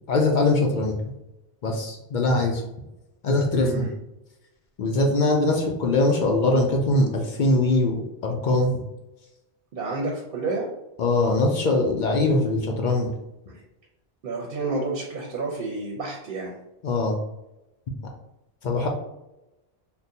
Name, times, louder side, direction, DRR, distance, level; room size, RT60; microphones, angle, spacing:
voice 1, 0.1-1.0 1.6-2.6 3.2-3.9 4.8-8.7 11.0-13.1 16.8-17.1 18.6-18.9, left 2 dB, 60° left, 1 dB, 0.6 m, -22 dB
voice 2, 3.5-3.9 9.7-10.7 13.5-13.6 14.2-16.5, right 3 dB, 60° right, -2 dB, 0.7 m, -30 dB
3.7 x 2.1 x 2.7 m, 0.93 s
omnidirectional pair, 1.1 m